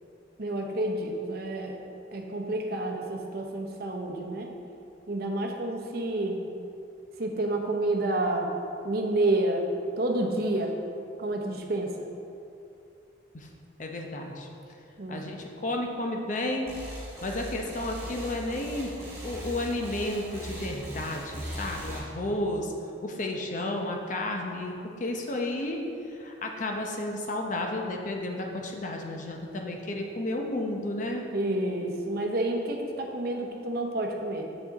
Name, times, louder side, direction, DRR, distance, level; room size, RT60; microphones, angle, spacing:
voice 1, 0.4-1.8 2.1-4.5 5.1-6.4 7.2-8.5 8.8-9.7 10.0-10.7 11.2-11.9 15.0-15.2 31.3-34.5, right 1 dB, 55° right, 2 dB, 0.8 m, -29 dB
voice 2, 13.8-14.5 15.1-16.8 17.2-18.9 19.2-22.7 23.0-25.8 26.1-31.3, left 1 dB, 45° left, 1 dB, 0.8 m, -32 dB
sound 1, 16.7-22.0, equal, 15° right, 1.8 m, -39 dB
7.1 x 6.0 x 4.0 m, 2.6 s
head